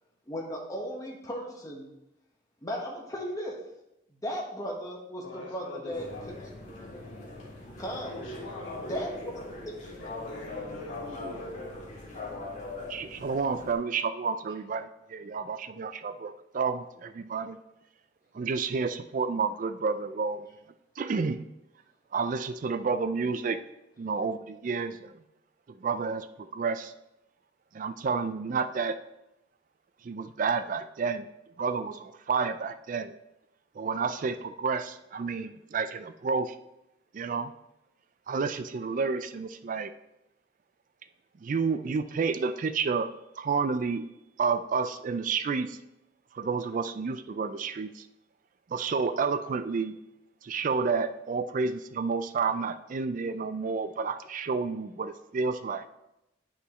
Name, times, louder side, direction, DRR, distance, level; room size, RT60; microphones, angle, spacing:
voice 1, 0.3-1.9 2.6-3.6 4.2-6.5 6.8-7.0 7.8-8.1 8.9-9.1, equal, 20° left, -1 dB, 1.2 m, -36 dB
voice 2, 5.2-6.2 8.0-9.2 9.6-11.7, left 1 dB, 85° left, -4 dB, 2.3 m, -43 dB
sound 1, 5.9-13.7, left 2 dB, 40° left, 1.9 m, -41 dB
voice 3, 12.9-17.6 18.3-20.5 21.0-21.4 22.1-23.6 24.0-25.1 25.8-26.9 27.7-29.0 30.0-31.3 31.6-33.1 33.8-36.6 37.1-37.5 38.3-39.9 41.4-43.1 43.4-44.0 44.4-45.8 46.3-48.0 48.7-50.0 50.4-55.8, right 5 dB, 45° right, 11 dB, 0.3 m, -30 dB
9.9 x 5.7 x 3.1 m, 0.87 s
head